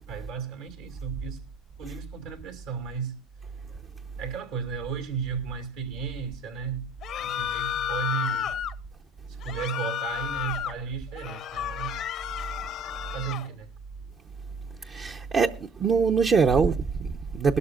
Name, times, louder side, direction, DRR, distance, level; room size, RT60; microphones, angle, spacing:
voice 1, 0.1-1.4 1.8-3.2 4.2-6.9 7.2-8.6 9.4-12.0 13.1-13.7, right 7 dB, 80° right, 2.5 m, -34 dB
sound 1, 7.0-8.7 9.4-10.7 11.2-13.5, left 10 dB, 55° left, 0.8 m, -32 dB
voice 2, 14.9-17.6, right 5 dB, 40° right, 0.7 m, -23 dB
19.0 x 12.5 x 2.4 m
supercardioid pair, 85°, 0 cm